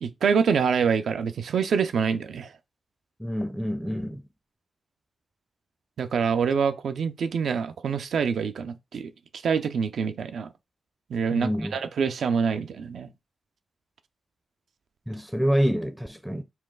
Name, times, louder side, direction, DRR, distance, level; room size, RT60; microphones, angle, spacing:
voice 1, 0.0-2.5 6.0-9.1 9.4-10.5 11.1-13.1, right 6 dB, 70° right, 0.5 m, -26 dB
voice 2, 3.2-4.2 11.3-11.8 15.1-16.4, equal, 5° right, 0.6 m, -27 dB
4.2 x 2.3 x 3.8 m
supercardioid pair, 45°, 0 cm